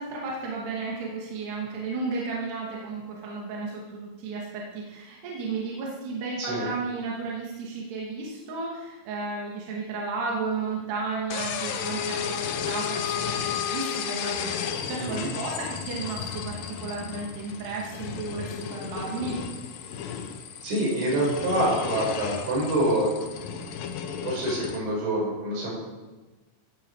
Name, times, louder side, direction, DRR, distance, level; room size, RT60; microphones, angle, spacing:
voice 1, 0.0-19.4, right 4 dB, 65° right, -3 dB, 4.3 m, -33 dB
sound 1, 11.3-24.8, left 8 dB, 70° left, 2.1 m, -33 dB
voice 2, 20.6-23.2 23.4-23.8 24.2-25.7, right 1 dB, 85° right, -4 dB, 8.7 m, -26 dB
16.0 x 15.0 x 5.0 m, 1.2 s
omnidirectional pair, 5.3 m